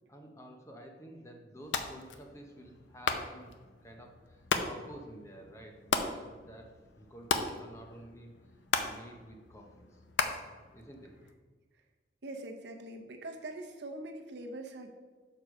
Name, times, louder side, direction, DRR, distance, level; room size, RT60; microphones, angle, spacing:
voice 1, 0.1-3.5 3.8-8.3 8.8-10.0 10.7-11.1, right 1 dB, 15° left, 2 dB, 0.7 m, -51 dB
sound 1, 1.6-11.3, left 5 dB, 85° left, 0.6 m, -37 dB
voice 2, 12.2-14.9, right 1 dB, 70° right, 3 dB, 0.8 m, -43 dB
6.6 x 4.6 x 4.9 m, 1.4 s
head